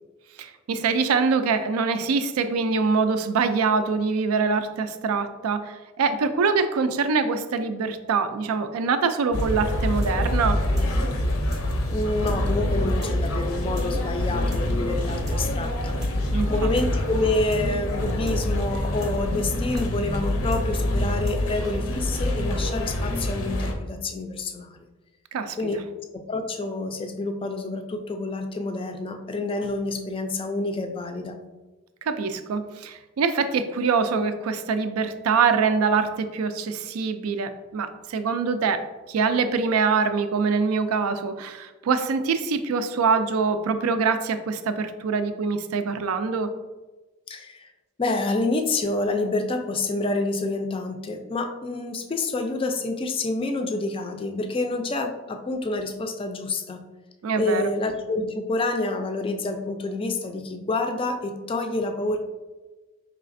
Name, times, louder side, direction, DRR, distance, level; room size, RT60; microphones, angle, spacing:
voice 1, 0.4-10.6 16.3-16.7 25.3-25.6 32.0-38.8 39.1-46.5 57.2-57.6, right 5 dB, 85° right, 9 dB, 0.4 m, -24 dB
sound 1, 9.3-23.7, left 1 dB, 75° left, 0.6 m, -26 dB
sound 2, 10.0-10.1 10.4-10.5 10.8-10.9 11.1-11.2 11.5-11.6 11.9-12.0 12.3-12.4 12.6-12.7 13.0-13.1 13.4-13.5 13.8-13.9 14.1-14.2 14.5-14.6 14.9-15.4 15.6-15.7 16.0-16.1 16.4-16.5 16.8-16.9 17.1-17.2 17.5-17.6 17.9-18.0 18.3-18.4 18.6-18.7 19.0-19.1 19.4-19.5 19.8-19.9 20.1-20.2 20.5-20.6 20.9-21.4 21.6-21.7, right 1 dB, 15° right, 0.7 m, -40 dB
voice 2, 11.9-16.0 16.5-24.8 25.6-25.8 26.1-31.4 47.3-47.7 48.0-56.8 57.4-62.2, left 2 dB, 25° left, 5 dB, 0.3 m, -28 dB
4.8 x 3.2 x 2.5 m, 1.2 s
head